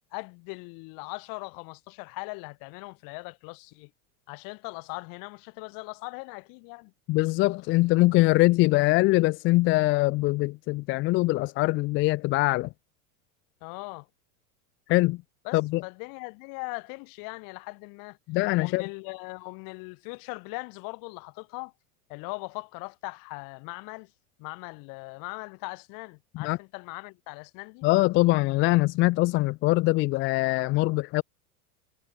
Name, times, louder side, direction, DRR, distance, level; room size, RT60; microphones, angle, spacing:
voice 1, 0.1-3.9 4.3-6.9 13.6-14.1 15.4-18.2 18.6-21.7 22.1-24.1 24.4-27.9, left 31 dB, 50° left, 2.5 m, -40 dB
voice 2, 7.1-12.7 14.9-15.2 15.5-15.8 18.3-18.9 26.3-26.6 27.8-31.2, left 21 dB, 30° left, 0.5 m, -23 dB
supercardioid pair, 140°, 44 cm